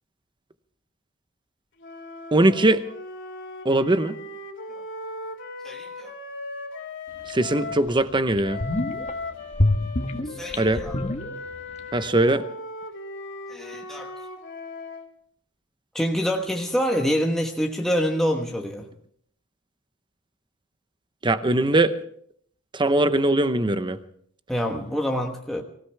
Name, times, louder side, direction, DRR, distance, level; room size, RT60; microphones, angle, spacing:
sound 1, 1.8-7.9 8.4-15.1, left 2 dB, 60° left, 3.1 m, -37 dB
voice 1, 2.3-2.8 3.6-4.1 7.3-8.6 10.6-10.8 11.9-12.5 21.2-21.9 22.7-24.0, right 2 dB, 20° right, 11 dB, 0.9 m, -21 dB
voice 2, 5.6-6.1 10.3-10.9 13.5-14.1 15.9-18.9 24.5-25.6, equal, ahead, 0 dB, 1.2 m, -26 dB
sound 2, 7.3-7.4 7.9-8.0 8.3-9.1 9.5-11.8 12.0-12.1, left 1 dB, 30° left, 1.5 m, -26 dB
24.5 x 16.5 x 3.5 m, 0.64 s
head